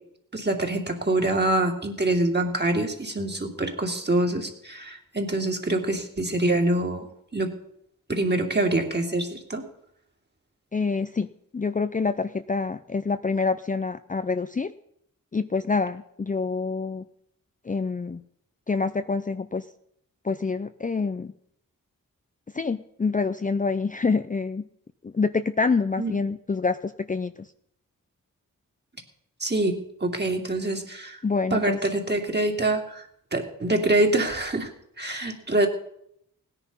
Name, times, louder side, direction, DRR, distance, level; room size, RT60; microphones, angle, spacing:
voice 1, 0.3-7.0 7.3-7.6 8.1-9.6 26.0-26.1 29.4-31.2 31.5-33.1 33.3-34.7 35.0-35.7, right 2 dB, 30° right, 2 dB, 2.7 m, -25 dB
voice 2, 10.7-11.3 11.5-14.7 15.3-17.0 17.6-18.2 18.7-19.7 20.2-21.3 22.5-24.6 25.0-27.5 31.2-31.8, left 4 dB, 25° left, 10 dB, 0.5 m, -26 dB
17.0 x 10.0 x 5.5 m, 0.73 s
cardioid pair, 45°, 34 cm